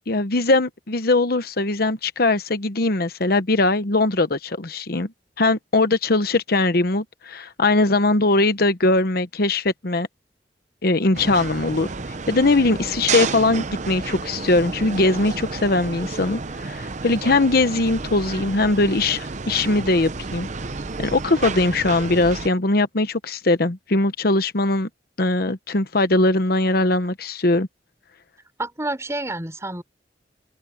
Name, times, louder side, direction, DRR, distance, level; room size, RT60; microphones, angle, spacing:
voice 1, 0.1-5.1 5.4-10.1 10.8-11.9 12.3-20.5 21.0-24.9 25.2-27.7, left 2 dB, 55° left, 1.0 m, -20 dB
sound 1, 11.1-22.5, right 4 dB, 40° right, 0.8 m, -31 dB
voice 2, 28.6-29.8, right 2 dB, 15° right, 5.6 m, -29 dB
head